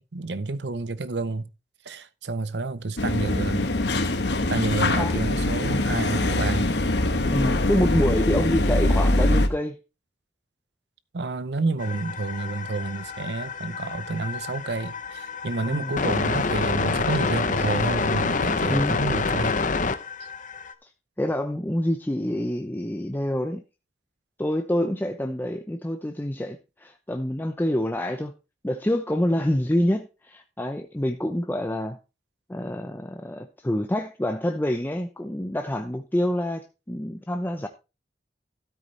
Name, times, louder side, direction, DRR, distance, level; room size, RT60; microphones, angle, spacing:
voice 1, 0.0-1.5 1.8-3.7 4.5-6.7 11.1-19.6, right 3 dB, 75° right, 0.7 m, -29 dB
sound 1, 3.0-9.5, left 2 dB, 70° left, 1.2 m, -23 dB
voice 2, 7.3-9.8 15.6-15.9 18.7-19.0 21.2-23.6 24.4-28.3 28.6-32.0 32.5-37.7, left 1 dB, 10° left, 0.6 m, -27 dB
sound 2, 11.8-20.7, left 4 dB, 45° left, 0.8 m, -27 dB
13.0 x 8.2 x 3.3 m
head